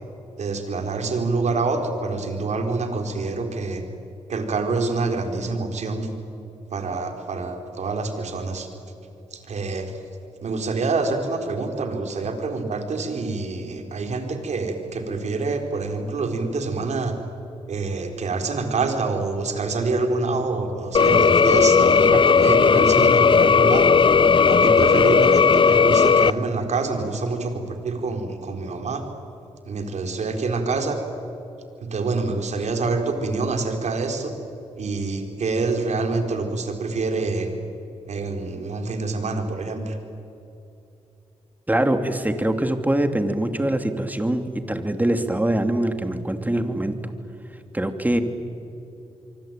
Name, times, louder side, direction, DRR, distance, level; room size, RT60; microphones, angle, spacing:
voice 1, 0.4-3.8 4.3-6.1 6.7-8.7 9.3-10.0 10.4-17.1 17.7-23.9 24.5-29.0 29.7-31.0 31.8-34.3 34.8-37.5 38.1-40.0, right 3 dB, 70° right, 5 dB, 4.2 m, -26 dB
sound 1, 20.9-26.3, left 5 dB, 45° left, 0.6 m, -16 dB
voice 2, 41.7-47.1 47.7-48.2, right 1 dB, 15° right, 7 dB, 3.0 m, -23 dB
26.0 x 24.5 x 9.2 m, 2.7 s
cardioid pair, 55°, 12 cm